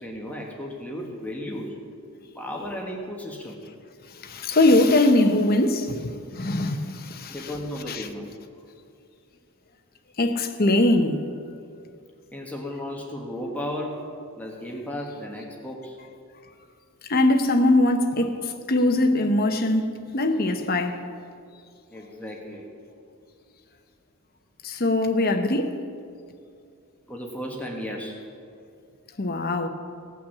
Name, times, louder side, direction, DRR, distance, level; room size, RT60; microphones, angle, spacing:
voice 1, 0.0-1.8 2.3-3.6 7.3-8.3 12.3-14.0 14.4-16.0 21.9-22.7 27.1-28.2, left 1 dB, 5° left, 1.3 m, -34 dB
voice 2, 4.1-7.5 7.9-8.1 10.2-11.2 17.1-21.0 24.6-25.8 29.2-29.7, left 2 dB, 45° left, 0.8 m, -22 dB
17.0 x 5.9 x 7.2 m
head